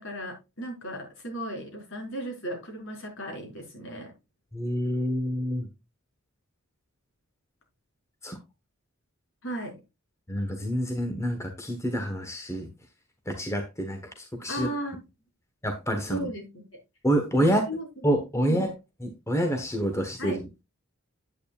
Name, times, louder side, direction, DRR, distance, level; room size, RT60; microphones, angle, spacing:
voice 1, 0.0-4.1 9.4-9.8 14.5-15.0 16.1-16.6 17.5-18.0 18.3-18.7 20.2-20.4, right 1 dB, 65° left, 1 dB, 4.6 m, -36 dB
voice 2, 4.5-5.7 8.2-8.4 10.3-12.7 13.3-14.7 15.6-16.3 17.0-17.6 18.0-18.7 19.0-20.4, equal, 15° left, 5 dB, 1.2 m, -27 dB
9.7 x 8.9 x 2.4 m, 0.25 s
head